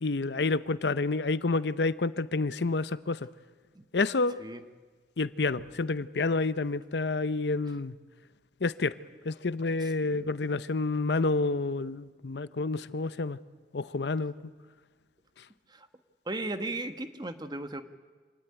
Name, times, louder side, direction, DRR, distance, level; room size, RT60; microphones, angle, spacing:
voice 1, 0.0-3.3 3.9-4.4 5.2-7.9 8.6-9.0 9.2-13.4 13.7-14.3, left 3 dB, 70° left, 16 dB, 0.7 m, -29 dB
voice 2, 9.8-10.3 15.7-15.9 16.2-17.8, right 2 dB, 25° right, 9 dB, 1.3 m, -36 dB
26.0 x 17.0 x 10.0 m, 1.4 s
head